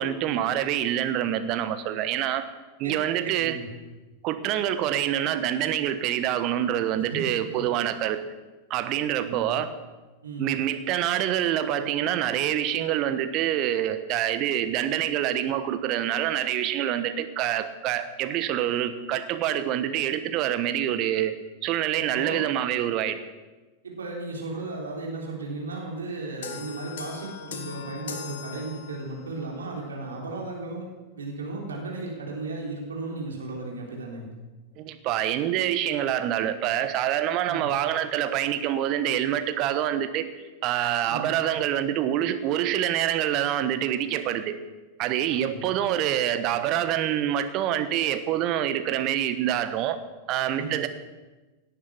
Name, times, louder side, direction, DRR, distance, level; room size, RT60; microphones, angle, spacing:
voice 1, 0.0-2.5 2.8-3.6 4.2-8.2 8.7-9.7 10.4-21.3 21.6-23.2 34.8-40.2 40.6-44.5 45.0-50.0 50.3-50.9, right 11 dB, 40° right, 10 dB, 1.2 m, -26 dB
voice 2, 2.8-3.7 6.9-7.6 9.2-9.5 10.2-10.5 21.9-22.4 23.8-30.9 31.2-34.3 37.5-37.7 41.1-41.3 45.3-45.6 50.5-50.8, right 2 dB, 70° right, -1 dB, 3.7 m, -35 dB
sound 1, 26.4-29.3, left 7 dB, 60° left, 1.8 m, -39 dB
18.0 x 10.0 x 6.0 m, 1.2 s
figure-of-eight pair, 90°, 0 cm